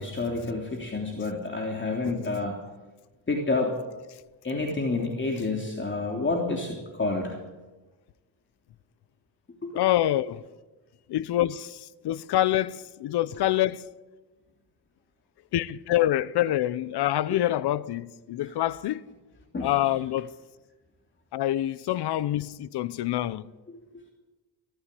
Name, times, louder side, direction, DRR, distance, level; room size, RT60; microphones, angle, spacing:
voice 1, 0.0-2.5 3.3-3.7 4.4-7.4 9.6-9.7 19.5-19.7, left 3 dB, 30° left, 3.3 m, -29 dB
voice 2, 9.7-10.4 11.1-13.9 15.5-19.1 19.6-20.3 21.3-23.5, left 13 dB, 80° left, 0.9 m, -26 dB
24.5 x 14.5 x 8.5 m
cardioid pair, 105°, 40 cm